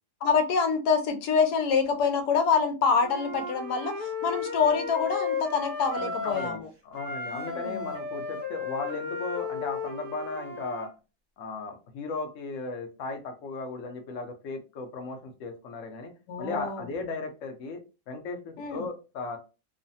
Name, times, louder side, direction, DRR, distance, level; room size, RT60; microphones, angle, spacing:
voice 1, 0.2-6.7 7.3-7.9 16.3-16.9 18.6-18.9, left 5 dB, 90° left, 1.2 m, -26 dB
Wind instrument woodwind instrument, 3.0-6.6 6.9-10.9, left 4 dB, 40° right, 0.9 m, -34 dB
voice 2, 5.9-10.9 11.4-16.1 16.4-17.8 18.1-19.4, left 3 dB, 65° left, 0.9 m, -36 dB
3.1 x 2.1 x 2.6 m
omnidirectional pair, 1.6 m